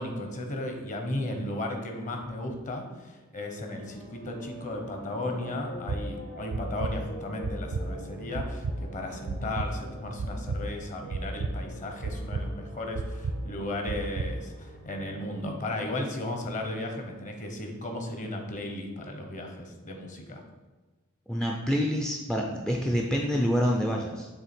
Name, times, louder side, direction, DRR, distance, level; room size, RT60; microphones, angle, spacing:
voice 1, 0.0-20.4, left 1 dB, 35° left, 3 dB, 0.9 m, -35 dB
sound 1, 3.4-16.7, equal, 70° left, 1.4 m, -46 dB
sound 2, 5.9-6.0 6.5-6.9 7.4-7.8 8.3-8.7 9.3-9.7 10.2-10.6 11.1-11.5 12.0-12.4 12.9-13.3 13.9-14.3, right 3 dB, 75° right, 0.4 m, -31 dB
voice 2, 21.3-24.3, equal, 5° left, 0 dB, 0.4 m, -27 dB
7.0 x 3.2 x 4.4 m, 1.2 s
head